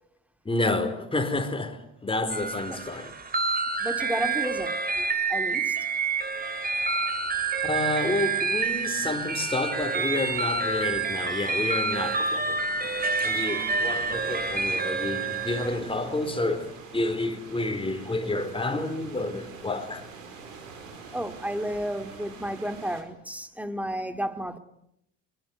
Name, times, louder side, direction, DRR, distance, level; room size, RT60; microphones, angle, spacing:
voice 1, 0.4-3.1 7.6-12.6 13.2-20.0, left 2 dB, 15° left, 4.3 m, -29 dB
sound 1, 2.3-15.8, right 4 dB, 25° right, 3.2 m, -28 dB
voice 2, 3.8-5.8 21.1-24.6, equal, 5° right, 2.5 m, -32 dB
sound 2, 5.0-23.0, right 4 dB, 90° right, 4.9 m, -47 dB
23.5 x 22.0 x 9.6 m
hypercardioid pair, 75°, 38 cm